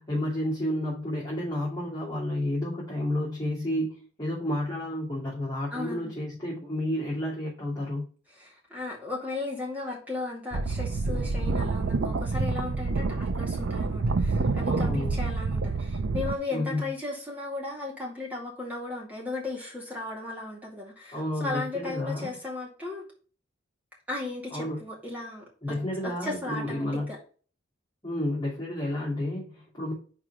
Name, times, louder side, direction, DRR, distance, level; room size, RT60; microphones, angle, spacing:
voice 1, 0.0-8.1 14.7-15.2 16.5-16.8 21.1-22.3 24.5-24.8 25.6-27.1 28.0-29.9, left 1 dB, 20° left, -9 dB, 2.7 m, -31 dB
voice 2, 5.7-6.2 8.3-23.0 24.1-25.5 26.0-27.2, left 2 dB, 10° right, -3 dB, 2.4 m, -36 dB
sound 1, 10.5-16.4, right 3 dB, 70° right, 0.5 m, -28 dB
4.8 x 4.7 x 4.9 m, 0.39 s
head